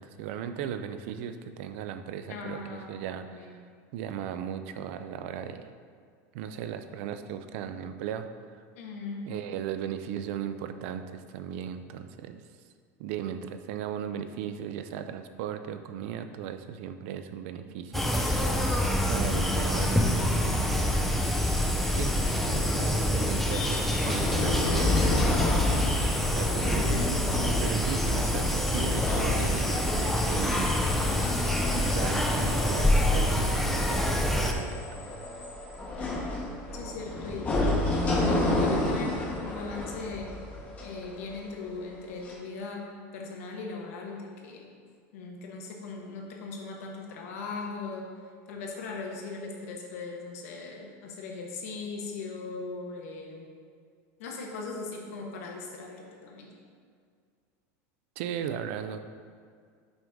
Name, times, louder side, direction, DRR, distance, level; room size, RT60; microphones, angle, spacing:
voice 1, 0.0-3.6 3.9-5.7 6.3-8.6 9.3-12.4 13.0-18.5 19.1-21.4 21.9-22.1 22.5-26.0 26.3-27.1 27.6-30.9 31.7-35.2 58.2-59.0, right 9 dB, 60° right, 9 dB, 0.4 m, -37 dB
voice 2, 2.3-3.6 8.7-9.3 36.0-37.6 38.1-40.3 40.8-44.7 45.1-48.1 48.5-53.5 54.2-56.5, left 3 dB, 85° left, 0 dB, 1.2 m, -39 dB
sound 1, 17.9-34.5, left 1 dB, ahead, 0.4 m, -26 dB
sound 2, 23.5-41.7 42.2-42.3, left 2 dB, 20° left, 0.8 m, -31 dB
6.0 x 5.3 x 3.5 m, 2.1 s
supercardioid pair, 165°, 8 cm